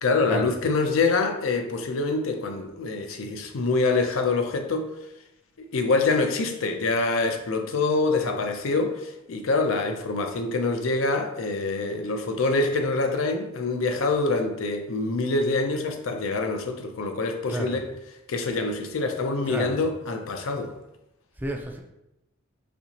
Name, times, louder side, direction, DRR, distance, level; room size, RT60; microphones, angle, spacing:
voice 1, 0.0-4.9 5.6-17.9 18.3-20.7, left 3 dB, 85° left, 0.5 m, -25 dB
voice 2, 17.5-17.8 19.5-19.8 21.4-21.8, right 1 dB, 10° right, 0.3 m, -30 dB
4.1 x 2.8 x 2.8 m
head